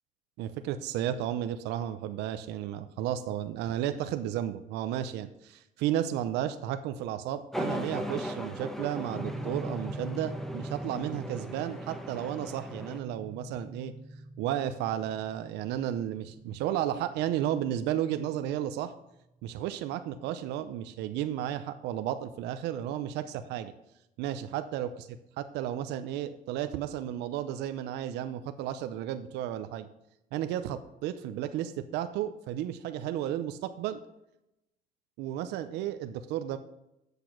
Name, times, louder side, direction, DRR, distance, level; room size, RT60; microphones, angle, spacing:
voice 1, 0.4-13.9 14.4-18.9 19.4-23.7 24.2-24.9 25.5-29.9 30.3-34.0 35.2-36.6, right 11 dB, 85° right, 10 dB, 0.6 m, -33 dB
sound 1, 7.5-13.0, equal, ahead, 1.0 m, -38 dB
sound 2, 9.1-19.2, right 1 dB, 60° right, 1.5 m, -44 dB
8.2 x 6.7 x 5.9 m, 0.87 s
cardioid pair, 110°, 17 cm